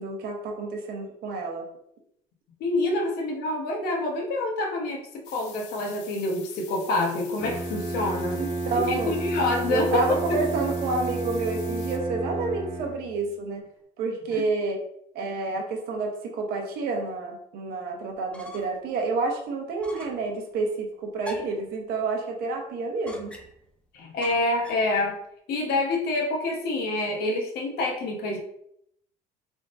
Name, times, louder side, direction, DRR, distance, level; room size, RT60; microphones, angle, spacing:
voice 1, 0.0-1.6 8.3-9.1 9.7-13.6 14.0-14.8 15.1-23.3, right 3 dB, 65° right, 2 dB, 0.9 m, -29 dB
voice 2, 2.6-5.0 5.3-8.4 8.8-10.1 23.9-25.2 25.5-28.4, left 2 dB, 65° left, 0 dB, 1.0 m, -27 dB
sound 1, 5.2-12.0, left 8 dB, 85° left, 0.6 m, -46 dB
Bowed string instrument, 7.4-13.3, right 2 dB, 20° right, 1.1 m, -31 dB
sound 2, 18.1-18.9 19.2-19.3 19.8-20.3 21.2-21.7 23.1-23.7 24.2-24.9, left 2 dB, 5° left, 0.6 m, -43 dB
3.6 x 3.6 x 2.5 m, 0.72 s
cardioid pair, 110°, 17 cm